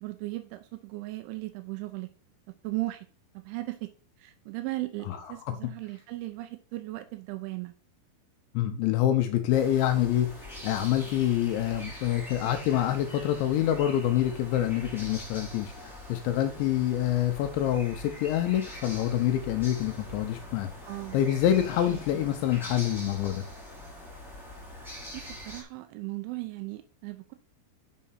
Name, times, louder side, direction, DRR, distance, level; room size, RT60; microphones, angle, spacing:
voice 1, 0.0-2.1 2.6-3.1 3.5-3.9 4.2-7.7 20.9-21.2 21.9-22.2 25.1-27.3, right 20 dB, 85° right, 8 dB, 2.8 m, -37 dB
voice 2, 5.0-5.6 8.5-10.3 10.6-23.4, left 11 dB, 85° left, 7 dB, 2.6 m, -26 dB
sound 1, 9.5-25.6, left 1 dB, ahead, 0.9 m, -44 dB
7.4 x 5.6 x 5.6 m, 0.41 s
omnidirectional pair, 5.9 m